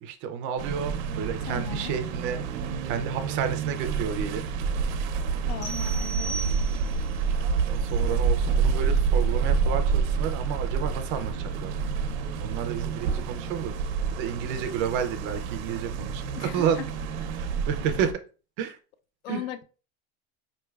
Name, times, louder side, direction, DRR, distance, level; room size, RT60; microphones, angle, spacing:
voice 1, 0.0-2.4 2.8-4.5 7.7-11.7 12.4-13.7 14.1-16.2 16.5-16.8 17.4-18.1 18.6-18.8 19.3-19.4, right 8 dB, 40° right, 0.4 m, -31 dB
sound 1, 0.6-18.1, right 5 dB, 85° right, 0.7 m, -28 dB
voice 2, 1.5-2.0 5.5-6.4 7.0-7.1 16.3-16.9 19.2-19.6, left 9 dB, 65° left, 0.5 m, -37 dB
sound 2, 5.6-7.1, right 3 dB, 10° left, 0.7 m, -37 dB
5.2 x 3.2 x 2.3 m
cardioid pair, 175°, 33 cm